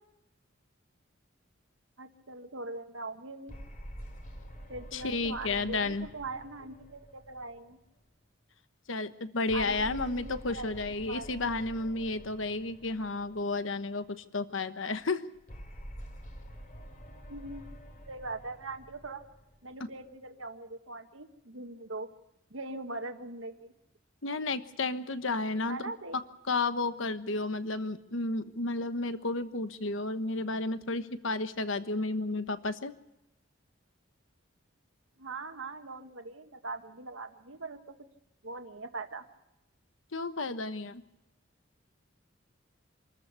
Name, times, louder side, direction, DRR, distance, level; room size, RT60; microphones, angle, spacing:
voice 1, 2.0-3.6 4.7-7.8 9.5-11.3 17.3-17.6 18.1-19.2 19.6-22.1 22.5-23.7 25.7-26.2 35.2-37.8 38.4-39.2, right 2 dB, 80° right, 6 dB, 1.6 m, -41 dB
sound 1, 3.5-8.1 9.5-13.9 15.5-20.0, equal, 40° left, 3.1 m, -47 dB
voice 2, 4.9-6.1 8.9-15.2 19.8-19.9 24.2-26.2 26.5-32.9 40.1-41.0, left 3 dB, 75° left, 11 dB, 1.2 m, -32 dB
26.5 x 14.0 x 8.3 m, 0.89 s
head